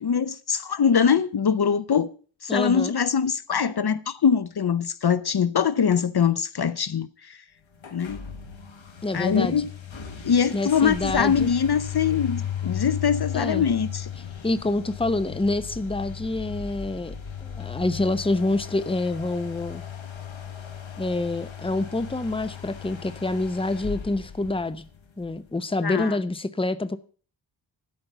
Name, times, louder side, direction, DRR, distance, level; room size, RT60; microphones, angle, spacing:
voice 1, 0.0-2.1 2.4-7.4 7.9-8.2 9.1-9.6 10.2-14.1 25.8-26.2, left 7 dB, 55° left, 0.7 m, -23 dB
voice 2, 2.5-3.0 9.0-9.6 10.5-11.5 13.3-13.7 14.4-17.1 17.4-19.8 21.0-24.8 25.2-27.0, left 2 dB, 10° left, 0.8 m, -27 dB
sound 1, 7.8-25.3, left 8 dB, 80° left, 1.5 m, -36 dB
12.5 x 5.3 x 7.9 m
wide cardioid pair, 55°, 46 cm